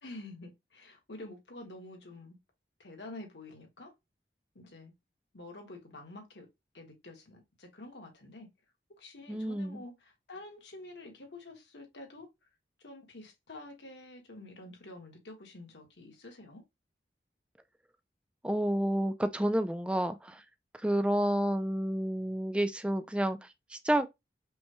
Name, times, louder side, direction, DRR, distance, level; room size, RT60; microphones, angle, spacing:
voice 1, 0.0-2.4 2.8-3.9 4.5-4.9 5.3-6.5 6.7-8.5 9.0-12.3 12.8-16.6, left 2 dB, 85° left, 1.4 m, -48 dB
voice 2, 9.3-9.8 18.4-20.4 20.8-23.4 23.7-24.1, right 1 dB, 5° right, 0.3 m, -30 dB
5.4 x 2.2 x 3.0 m
head